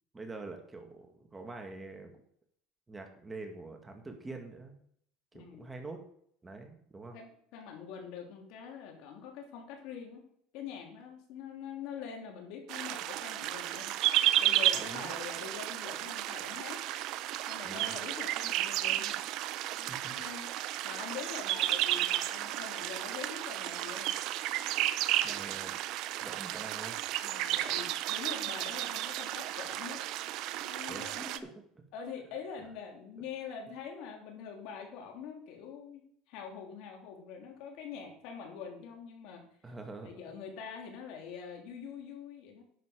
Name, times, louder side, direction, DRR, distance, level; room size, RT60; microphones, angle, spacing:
voice 1, 0.1-2.1 2.9-4.8 5.3-6.0 6.4-7.2 14.7-15.1 17.6-18.0 19.9-20.2 25.2-25.7 26.2-27.0 30.9-31.3 39.6-40.2, right 3 dB, 15° right, 4 dB, 2.0 m, -45 dB
voice 2, 5.3-5.7 7.1-10.2 10.5-13.9 14.4-16.8 17.5-19.2 19.8-24.1 27.2-30.0 30.6-31.5 31.9-36.0 36.3-39.4 40.0-42.6, left 7 dB, 70° left, 2 dB, 3.2 m, -44 dB
sound 1, 12.7-31.4, right 14 dB, 60° right, 0.7 m, -33 dB
11.0 x 6.9 x 5.2 m, 0.66 s
supercardioid pair, 110°, 0 cm